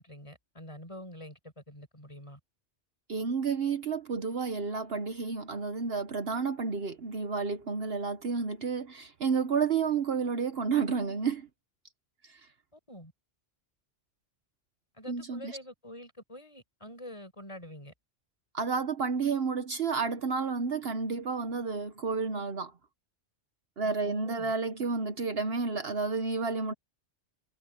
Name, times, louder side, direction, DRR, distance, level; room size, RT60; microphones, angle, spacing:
voice 1, 0.0-2.4 12.9-13.1 14.9-17.9 23.8-24.5, equal, 25° left, 6.7 m, -46 dB
voice 2, 3.1-11.5 15.1-15.6 18.5-22.7 23.8-26.7, right 5 dB, 60° right, 1.2 m, -31 dB
omnidirectional pair, 1.2 m